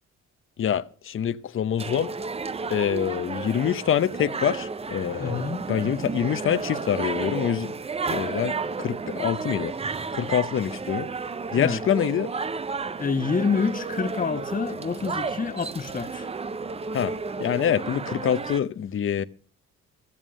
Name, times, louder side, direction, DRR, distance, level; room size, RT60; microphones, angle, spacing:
voice 1, 0.6-2.1 2.7-7.7 8.1-9.7 10.1-11.1 11.5-12.3 16.9-17.1 17.4-19.2, left 9 dB, 45° left, 0.7 m, -25 dB
sound 1, 1.8-18.6, right 4 dB, 20° right, 0.5 m, -32 dB
voice 2, 5.2-5.7 11.6-11.8 13.0-16.3, left 5 dB, 25° left, 1.1 m, -27 dB
14.5 x 7.4 x 6.2 m
cardioid pair, 90°, 30 cm